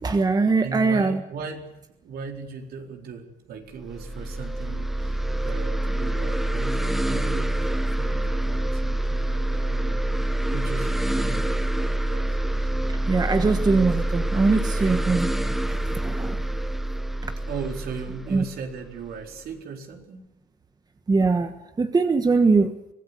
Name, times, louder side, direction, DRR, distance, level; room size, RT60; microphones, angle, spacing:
voice 1, 0.0-1.2 13.1-15.3 15.6-16.4 18.3-18.4 21.1-22.7, right 4 dB, 25° right, 8 dB, 1.4 m, -22 dB
voice 2, 0.6-10.0 10.5-12.4 17.5-20.3, right 5 dB, 65° right, 3 dB, 4.4 m, -37 dB
sound 1, 3.8-19.3, right 1 dB, ahead, 0.8 m, -26 dB
25.0 x 17.0 x 8.2 m, 0.93 s
cardioid pair, 110°, 17 cm